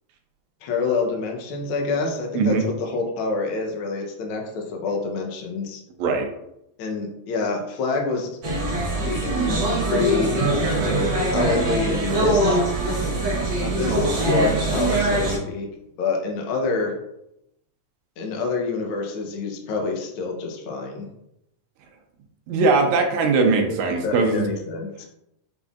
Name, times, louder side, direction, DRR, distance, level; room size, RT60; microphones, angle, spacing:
voice 1, 0.6-2.5 2.8-5.8 6.8-8.3 8.9-10.3 11.2-12.6 13.6-15.7 16.0-16.9 18.2-21.1 23.4-23.8 24.0-25.1, left 4 dB, 80° left, 1 dB, 1.1 m, -27 dB
sound 1, 8.4-15.4, right 1 dB, 60° right, 1.2 m, -22 dB
voice 2, 22.5-24.4, right 4 dB, 80° right, 3 dB, 1.9 m, -20 dB
6.0 x 3.6 x 2.4 m, 0.83 s
omnidirectional pair, 3.4 m